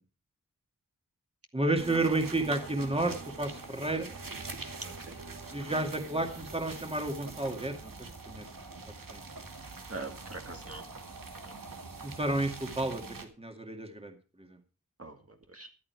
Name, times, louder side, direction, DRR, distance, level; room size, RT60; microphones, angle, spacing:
voice 1, 1.5-4.1 5.5-8.5 9.1-9.2 12.0-14.6, right 2 dB, 20° right, 5 dB, 2.2 m, -32 dB
sound 1, 1.8-13.3, right 3 dB, 85° right, 2.2 m, -44 dB
voice 2, 4.8-5.2 9.9-10.8 11.4-11.5 15.0-15.7, right 3 dB, 45° right, 4 dB, 2.0 m, -43 dB
14.0 x 11.5 x 4.7 m, 0.34 s
wide cardioid pair, 65°, 33 cm